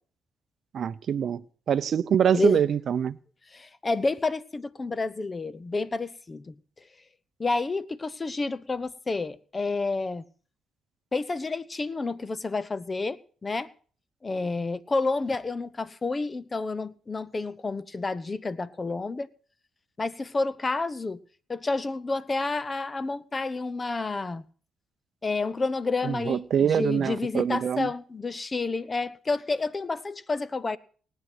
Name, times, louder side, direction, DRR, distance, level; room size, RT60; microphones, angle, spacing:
voice 1, 0.7-1.4 1.7-3.2 26.0-27.9, right 8 dB, 60° right, 0.6 m, -25 dB
voice 2, 3.5-6.5 7.4-10.2 11.1-13.7 14.2-19.3 20.0-21.2 21.5-24.4 25.2-30.8, left 3 dB, 25° left, 0.7 m, -29 dB
19.5 x 9.1 x 6.1 m
cardioid pair, 90°, 0 cm